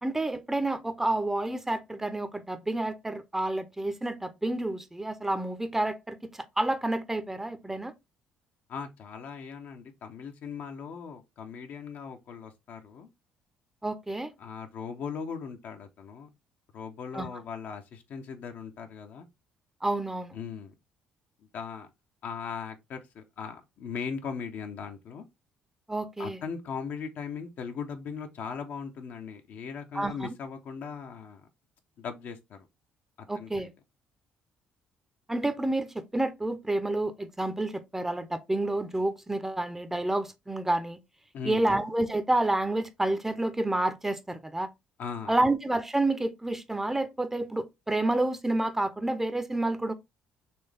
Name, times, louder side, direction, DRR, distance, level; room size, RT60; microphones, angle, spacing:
voice 1, 0.0-6.3 6.6-7.9 13.8-14.3 17.1-17.3 19.8-20.4 25.9-26.4 29.9-30.3 33.3-33.7 35.3-41.0 41.4-44.7 45.3-49.9, right 2 dB, 10° right, 0.7 m, -29 dB
voice 2, 8.7-13.1 14.4-16.3 16.7-19.3 20.3-20.7 21.5-21.9 22.2-25.2 26.2-31.5 32.0-32.7 33.3-33.7 41.3-41.8 45.0-45.5, left 6 dB, 65° left, 0.9 m, -39 dB
4.4 x 3.1 x 3.4 m
cardioid pair, 85°, 3 cm